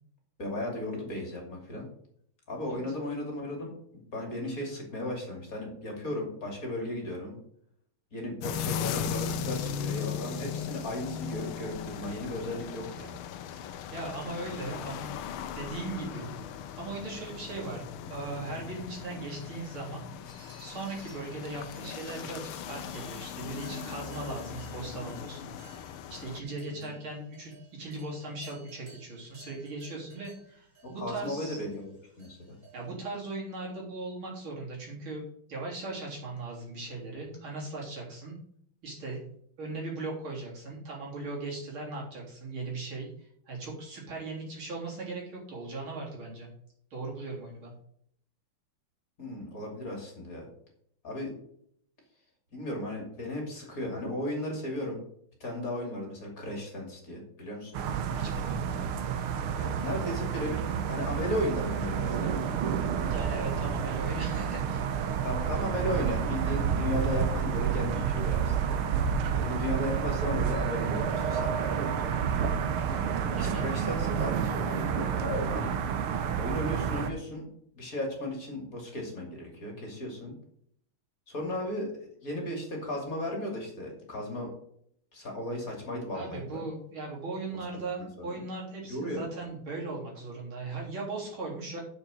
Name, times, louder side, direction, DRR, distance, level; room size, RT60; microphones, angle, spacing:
voice 1, 0.4-1.8 2.5-7.4 8.1-13.2 26.8-26.9 30.8-31.9 32.2-32.6 49.2-50.5 51.0-51.3 52.5-55.0 55.4-57.7 59.6-62.4 65.2-68.8 69.4-72.1 73.3-75.7 76.4-77.4 77.7-80.3 81.3-81.9 82.2-84.5 85.1-86.6 88.2-88.4 88.8-89.2, left 1 dB, 40° left, 1 dB, 3.1 m, -35 dB
sound 1, 8.4-26.4, left 8 dB, 85° left, 1.6 m, -38 dB
voice 2, 13.5-15.1 15.5-16.3 16.7-20.1 20.6-31.6 32.7-35.2 35.5-38.4 38.8-39.3 39.6-46.5 46.9-47.7 58.1-58.6 63.1-65.1 73.3-73.6 86.1-91.8, right 3 dB, 70° right, -4 dB, 4.3 m, -38 dB
sound 2, 20.3-32.9, right 2 dB, 35° right, 4.1 m, -57 dB
sound 3, 57.7-77.1, right 7 dB, 90° right, 1.8 m, -29 dB
7.2 x 7.0 x 6.4 m, 0.66 s
omnidirectional pair, 2.3 m